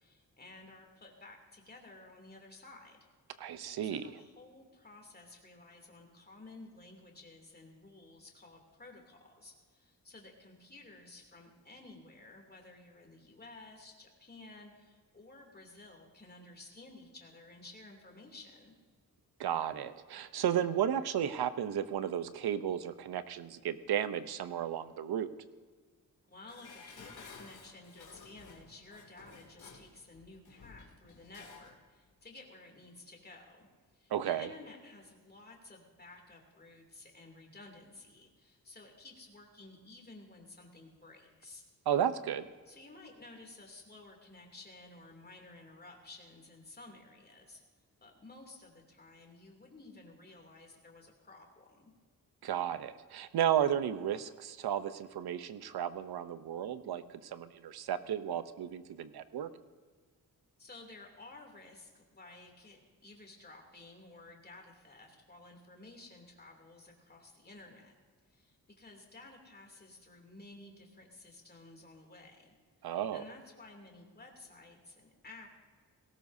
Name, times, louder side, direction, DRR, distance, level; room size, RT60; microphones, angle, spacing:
voice 1, 0.0-3.1 3.8-18.7 26.3-33.7 33.9-41.6 42.6-47.6 48.0-51.9 60.6-67.9 68.3-72.5 73.1-75.5, left 2 dB, 25° left, 1 dB, 2.8 m, -54 dB
voice 2, 3.4-4.1 19.4-25.3 34.1-34.5 41.9-42.5 52.4-59.5 72.8-73.2, right 9 dB, 85° right, 12 dB, 0.8 m, -33 dB
Dishes pots and pans, 26.5-31.8 32.1-32.2, left 4 dB, 85° left, 2.5 m, -54 dB
18.5 x 17.5 x 2.7 m, 1.5 s
wide cardioid pair, 120°, 37 cm